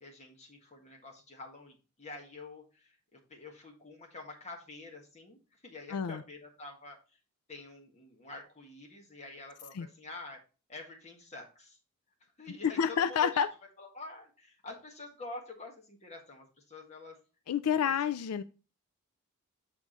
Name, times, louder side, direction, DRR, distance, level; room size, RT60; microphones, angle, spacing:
voice 1, 0.0-7.2 7.5-10.4 10.7-11.8 12.4-13.4 13.8-17.2 17.8-17.9, left 3 dB, 30° left, 1.7 m, -47 dB
voice 2, 5.9-6.2 9.7-9.9 12.8-13.5 17.5-18.4, left 7 dB, 85° left, 0.4 m, -29 dB
6.8 x 4.8 x 3.8 m
head